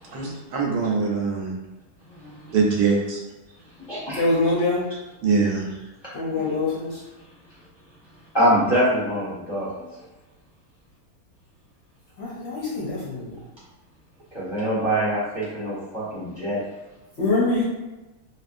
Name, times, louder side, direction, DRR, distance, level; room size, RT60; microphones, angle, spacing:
voice 1, 0.1-1.5 2.5-3.2 5.2-5.6, right 4 dB, 80° right, 0 dB, 1.1 m, -22 dB
voice 2, 2.1-2.6 3.9-4.2 8.3-9.8 14.3-16.6, equal, 20° left, -10 dB, 0.8 m, -24 dB
voice 3, 4.1-4.9 6.1-7.0 12.2-13.4 17.2-17.6, left 2 dB, 60° left, -6 dB, 0.8 m, -24 dB
3.1 x 2.4 x 2.5 m, 1.1 s
omnidirectional pair, 1.6 m